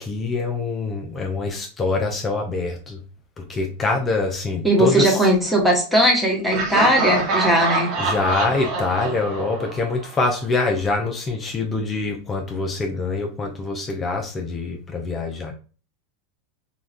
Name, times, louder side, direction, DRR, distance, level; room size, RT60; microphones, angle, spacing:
voice 1, 0.0-3.0 3.4-5.3 8.0-15.5, left 3 dB, 25° left, 0.6 m, -25 dB
voice 2, 4.6-7.9, right 1 dB, 5° right, 1.3 m, -18 dB
Laughter, 6.5-10.4, right 3 dB, 50° right, 0.9 m, -26 dB
3.9 x 2.4 x 2.5 m
hypercardioid pair, 105°, 0 cm